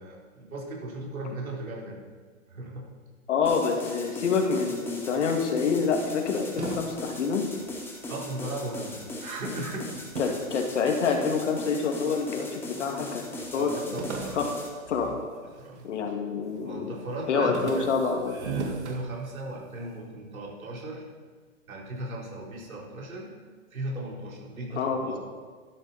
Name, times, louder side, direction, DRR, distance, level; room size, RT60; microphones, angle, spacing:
voice 1, 0.0-2.0 2.5-2.9 8.1-10.1 13.5-14.5 15.6-15.9 16.6-17.9 18.3-21.0 21.7-23.3 23.7-25.2, right 2 dB, 80° right, -3 dB, 4.0 m, -37 dB
voice 2, 3.3-7.5 10.2-13.2 13.5-14.0 14.3-14.5 14.9-15.1 15.8-16.9 17.3-18.4 24.8-25.0, left 5 dB, 60° left, 3 dB, 2.3 m, -27 dB
sound 1, 3.4-14.7, left 1 dB, 5° left, 1.5 m, -39 dB
sound 2, 6.0-8.6 8.9-11.5 12.1-12.7 13.0-13.1 13.4-16.0 16.4-16.8 17.1-19.7, right 4 dB, 55° right, 1.9 m, -39 dB
12.0 x 10.0 x 4.2 m, 1.5 s
hypercardioid pair, 145°, 41 cm